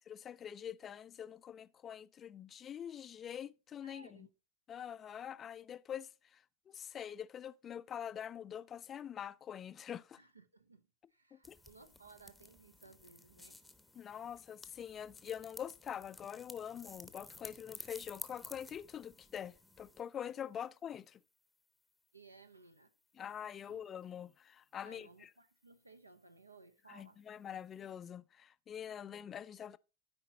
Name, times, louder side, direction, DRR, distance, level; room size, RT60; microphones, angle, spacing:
voice 1, 0.0-4.3 4.7-10.2 11.3-11.6 13.9-21.2 23.2-25.3 26.9-29.8, left 9 dB, 25° left, 0.3 m, -45 dB
voice 2, 3.8-4.3 10.2-13.6 22.1-22.9 23.7-23.8 24.8-27.2, right 4 dB, 80° right, 0.9 m, -60 dB
sound 1, 11.4-20.0, left 2 dB, 5° left, 0.8 m, -54 dB
13.0 x 5.1 x 2.9 m
figure-of-eight pair, 90°, 0 cm